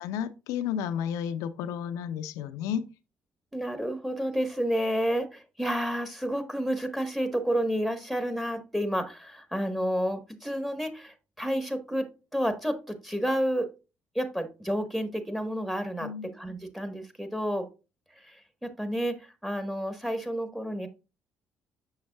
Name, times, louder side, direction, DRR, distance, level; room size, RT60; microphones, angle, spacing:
voice 1, 0.0-2.9 16.0-16.4, left 8 dB, 80° left, 0.5 m, -32 dB
voice 2, 3.5-13.7 14.1-17.7 18.2-20.9, equal, 5° right, 1.3 m, -30 dB
6.4 x 6.2 x 2.3 m
hypercardioid pair, 60°, 6 cm